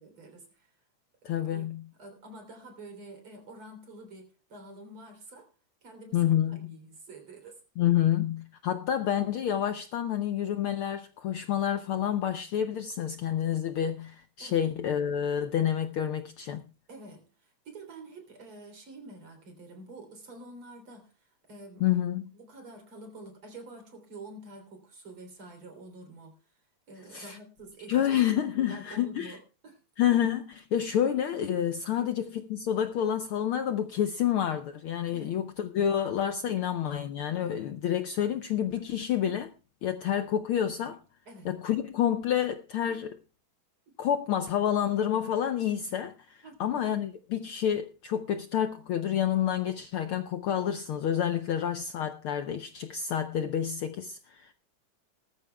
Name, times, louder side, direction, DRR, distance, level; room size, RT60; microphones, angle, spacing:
voice 1, 0.0-0.7 1.3-1.7 2.0-5.5 5.8-7.6 8.0-8.2 14.4-14.6 16.9-21.9 22.3-28.2 28.5-29.8 35.1-35.4 37.4-37.7 41.3-41.5 42.9-43.0 46.4-46.8, right 2 dB, 45° right, 4.0 m, -48 dB
voice 2, 1.2-1.8 6.1-6.7 7.8-16.6 21.8-22.3 27.1-27.4 27.9-29.4 30.0-39.5 39.8-41.0 41.4-43.1 44.0-54.5, left 10 dB, 90° left, 1.1 m, -29 dB
20.0 x 13.0 x 2.3 m
omnidirectional pair, 3.3 m